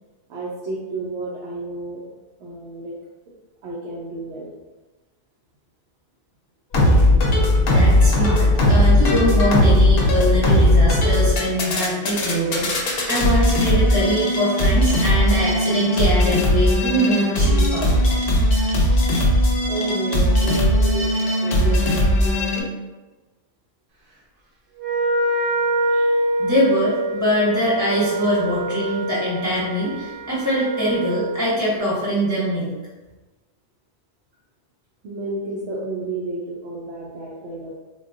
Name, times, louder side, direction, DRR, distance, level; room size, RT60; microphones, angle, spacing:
voice 1, 0.3-2.0 2.4-2.9 3.6-4.5 19.7-21.1 21.4-22.7 35.0-37.7, right 2 dB, 85° right, -5 dB, 0.9 m, -31 dB
sound 1, 6.7-22.6, left 1 dB, 65° left, 0.8 m, -18 dB
voice 2, 7.7-18.0 25.9-26.1 26.4-32.7, equal, 20° left, -9 dB, 0.7 m, -23 dB
Wind instrument woodwind instrument, 24.8-31.5, right 1 dB, 60° right, 0.8 m, -25 dB
3.7 x 2.2 x 2.5 m, 1.2 s
omnidirectional pair, 1.1 m